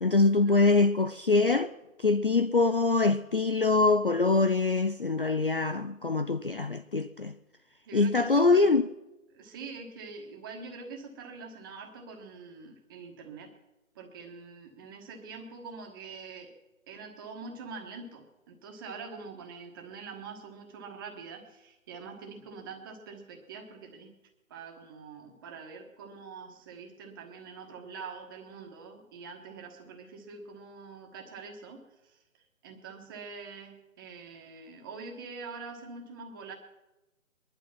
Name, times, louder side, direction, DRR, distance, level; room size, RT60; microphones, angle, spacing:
voice 1, 0.0-1.7 2.0-7.3 7.9-8.9, left 3 dB, 45° left, 0.4 m, -24 dB
voice 2, 7.8-8.7 9.3-13.5 13.9-16.5 16.9-24.1 24.5-32.2 32.6-36.5, right 4 dB, 15° right, 1.3 m, -45 dB
21.0 x 11.5 x 5.9 m
figure-of-eight pair, 155°, 41 cm